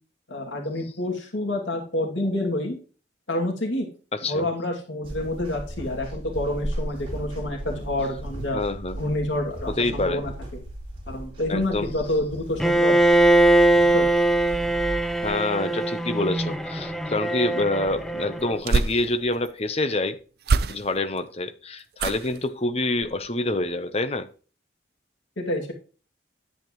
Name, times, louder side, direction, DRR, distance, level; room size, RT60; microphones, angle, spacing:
voice 1, 0.3-2.8 3.3-3.9 4.2-8.6 9.0-10.3 11.1-13.0 13.9-14.1 25.4-25.7, left 1 dB, 80° left, 2.6 m, -28 dB
voice 2, 4.1-4.5 8.5-9.0 9.7-10.2 11.5-11.9 15.2-20.2 20.7-24.3, left 2 dB, 30° left, 0.9 m, -26 dB
sound 1, 5.0-15.3, right 1 dB, 30° right, 3.9 m, -36 dB
Bowed string instrument, 12.6-18.6, right 1 dB, ahead, 0.7 m, -21 dB
sound 2, 17.8-19.5 20.4-21.2 21.9-22.5 22.9-23.3 23.6-23.7, right 4 dB, 55° right, 0.5 m, -27 dB
10.5 x 8.9 x 3.1 m
head